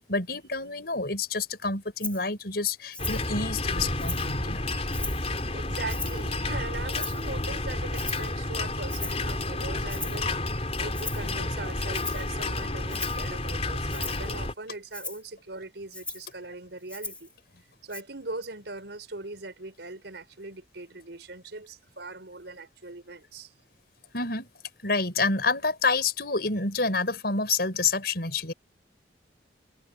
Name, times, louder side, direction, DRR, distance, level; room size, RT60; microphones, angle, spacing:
voice 1, 0.0-4.8 24.1-24.5 24.8-28.5, left 4 dB, 60° left, 6.5 m, -28 dB
Rattle (instrument), 2.0-2.2 2.9-3.3 3.7-4.4 4.9-5.3 5.9-6.3 6.9-7.4 7.9-8.3 8.9-9.3 9.9-10.3 10.9-11.3 11.9-12.3 12.9-13.2 13.9-14.3 14.9-15.2 15.9-16.3 16.9-17.3 17.9-18.0, left 2 dB, 5° left, 4.6 m, -38 dB
sound 1, 3.0-14.5, left 2 dB, 35° left, 4.8 m, -30 dB
voice 2, 5.5-10.3 10.8-17.3 17.8-23.5, right 2 dB, 75° right, 4.5 m, -40 dB
head